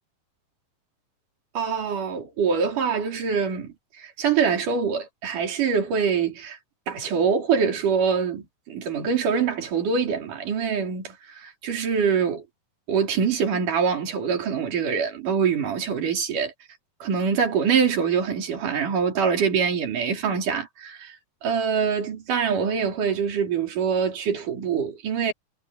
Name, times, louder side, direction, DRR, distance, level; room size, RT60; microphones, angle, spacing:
voice 1, 1.6-6.6 6.9-12.4 12.9-16.5 17.0-21.2 21.4-25.3, right 6 dB, 65° right, 5.4 m, -24 dB
omnidirectional pair, 4.0 m